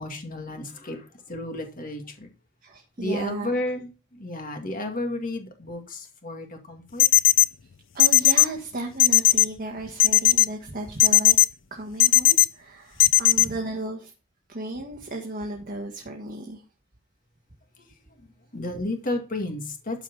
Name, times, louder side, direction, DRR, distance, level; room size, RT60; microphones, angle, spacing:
voice 1, 0.0-2.3 3.0-7.1 17.8-17.9 18.2-20.0, left 1 dB, 45° left, 2.2 m, -32 dB
voice 2, 2.6-3.5 7.9-11.4 11.7-14.1 14.5-16.6, right 1 dB, 45° right, 1.7 m, -34 dB
sound 1, 7.0-7.5 8.0-8.5 9.0-9.5 10.0-10.5 11.0-11.5 12.0-12.5 13.0-13.5, left 16 dB, 65° left, 0.5 m, -15 dB
13.0 x 4.9 x 5.5 m
head